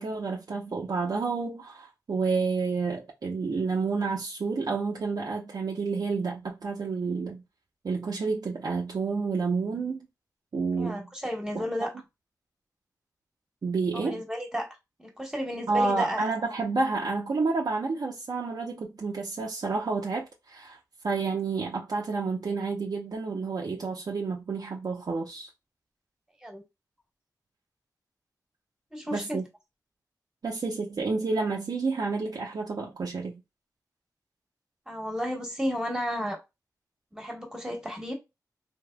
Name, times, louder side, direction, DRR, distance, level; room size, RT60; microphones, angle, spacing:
voice 1, 0.0-7.4 7.8-10.0 10.5-11.1 11.5-11.6 13.6-14.2 15.7-20.8 21.0-25.5 29.1-29.4 30.4-33.4, right 4 dB, 70° right, 0.7 m, -29 dB
voice 2, 10.8-11.9 13.9-14.7 15.0-16.2 26.4-26.6 28.9-29.4 34.9-36.4 37.1-38.1, equal, 10° right, 1.2 m, -32 dB
3.5 x 2.9 x 2.2 m
wide cardioid pair, 65°, 7 cm